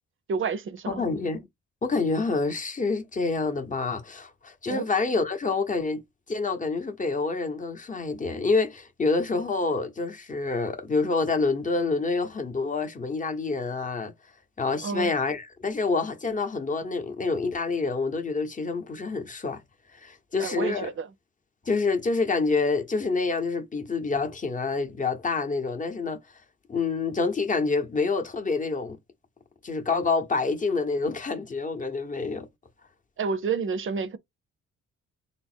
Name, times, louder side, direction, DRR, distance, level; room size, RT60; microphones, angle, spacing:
voice 1, 0.3-1.0 4.7-4.8 14.8-15.1 20.4-21.1 33.2-34.2, right 5 dB, 45° right, 0.6 m, -29 dB
voice 2, 0.9-1.5 1.8-6.0 6.3-14.1 14.6-19.6 19.9-20.9 21.7-26.2 26.7-29.0 29.6-32.5, left 4 dB, 25° left, 0.8 m, -27 dB
3.4 x 2.0 x 4.2 m
cardioid pair, 90°, 30 cm